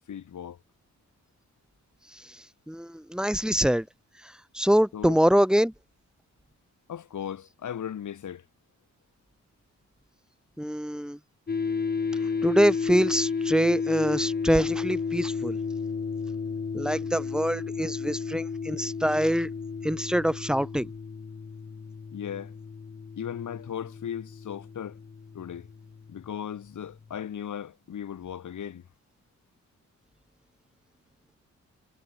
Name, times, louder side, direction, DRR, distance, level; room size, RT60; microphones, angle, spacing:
voice 1, 0.1-0.6 4.9-5.2 6.9-8.4 12.2-12.4 22.1-22.6 23.2-25.0 25.3-25.7 26.1-28.8, left 9 dB, 85° left, 7.9 m, -37 dB
voice 2, 2.7-3.9 4.5-5.7 10.6-11.2 12.4-15.6 16.7-19.5 19.8-20.9, equal, ahead, 3.8 m, -24 dB
sound 1, 11.5-26.7, left 5 dB, 35° left, 1.0 m, -32 dB
cardioid pair, 95°, 29 cm